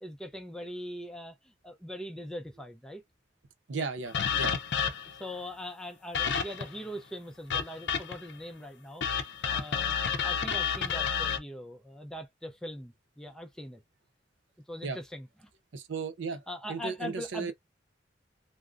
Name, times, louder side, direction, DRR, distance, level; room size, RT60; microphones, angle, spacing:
voice 1, 0.0-3.0 5.1-13.8 14.7-15.3 16.3-17.5, equal, 5° left, 0.4 m, -41 dB
voice 2, 3.7-4.6 14.8-15.0 15.7-17.5, right 4 dB, 80° right, 0.6 m, -35 dB
sound 1, 4.1-5.2 6.1-6.8 7.5-8.3 9.0-11.4, left 7 dB, 70° left, 0.5 m, -30 dB
3.6 x 2.0 x 2.4 m
head